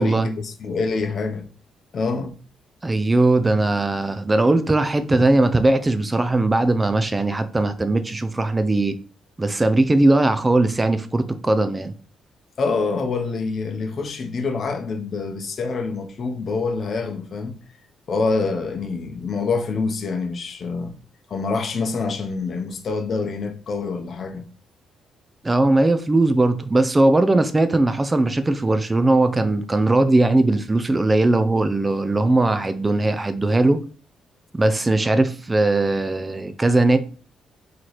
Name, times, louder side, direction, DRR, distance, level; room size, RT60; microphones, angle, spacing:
voice 1, 0.0-1.4 1.9-2.4 12.6-17.5 18.1-20.9 21.3-24.4, left 4 dB, 50° left, 0.7 m, -26 dB
voice 2, 2.8-8.9 9.4-11.9 25.4-33.8 34.5-37.0, right 2 dB, 20° right, 0.4 m, -19 dB
3.9 x 3.0 x 3.1 m
cardioid pair, 90°, 0 cm